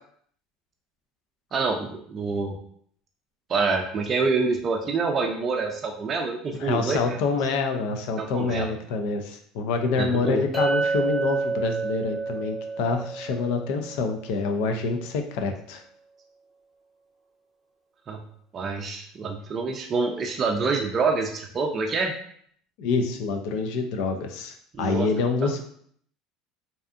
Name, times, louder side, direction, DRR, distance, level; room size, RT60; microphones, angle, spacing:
voice 1, 1.5-2.6 3.5-7.0 8.2-8.7 10.0-10.4 18.1-18.2 18.5-22.1 24.7-25.1, right 4 dB, 35° right, 2 dB, 0.4 m, -26 dB
voice 2, 6.5-15.8 22.8-25.6, left 4 dB, 75° left, 5 dB, 0.4 m, -27 dB
Chink clink, 10.5-14.8, right 3 dB, ahead, 0.7 m, -29 dB
2.7 x 2.3 x 2.4 m, 0.62 s
supercardioid pair, 100°, 0 cm